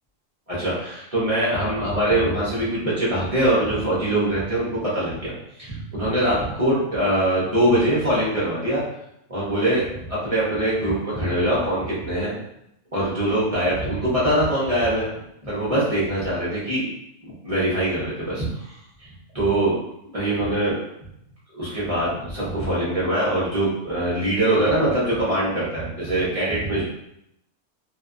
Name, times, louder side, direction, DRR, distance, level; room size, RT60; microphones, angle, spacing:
voice 1, 0.5-5.3 5.6-8.8 9.3-9.8 10.1-12.3 12.9-15.1 15.4-16.9 17.3-19.1 19.3-19.7 20.0-20.8 21.5-26.8, right 1 dB, 35° right, -8 dB, 0.6 m, -23 dB
2.6 x 2.3 x 2.5 m, 0.80 s
omnidirectional pair, 1.6 m